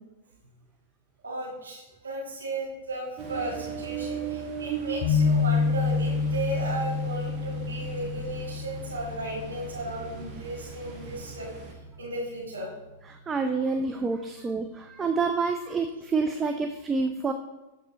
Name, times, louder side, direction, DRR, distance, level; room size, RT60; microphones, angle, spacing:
voice 1, 1.2-11.5 12.0-12.7 14.7-14.8, right 1 dB, 85° right, -5 dB, 1.6 m, -35 dB
Ocean, 3.2-11.7, right 7 dB, 35° right, 1.2 m, -39 dB
sound 1, 5.0-12.1, left 5 dB, 50° left, 0.8 m, -29 dB
voice 2, 13.1-17.3, right 4 dB, 20° right, 6 dB, 0.4 m, -28 dB
7.1 x 3.3 x 4.4 m, 1.1 s
hypercardioid pair, 100°, 0 cm